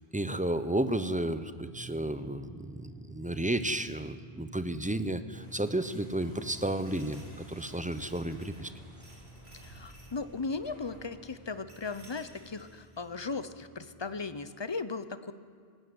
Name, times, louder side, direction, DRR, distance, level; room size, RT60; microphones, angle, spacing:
voice 1, 0.1-8.7, right 1 dB, 10° right, 11 dB, 0.6 m, -32 dB
sound 1, 1.5-14.2, right 3 dB, 65° left, 8.1 m, -52 dB
sound 2, 5.3-12.6, equal, 80° left, 5.5 m, -55 dB
sound 3, 6.6-8.7 9.0-10.1 11.7-13.1, right 1 dB, 75° right, 3.8 m, -58 dB
voice 2, 9.6-15.3, left 4 dB, 30° left, 12 dB, 0.7 m, -37 dB
18.5 x 16.5 x 9.6 m, 2.1 s
omnidirectional pair, 1.1 m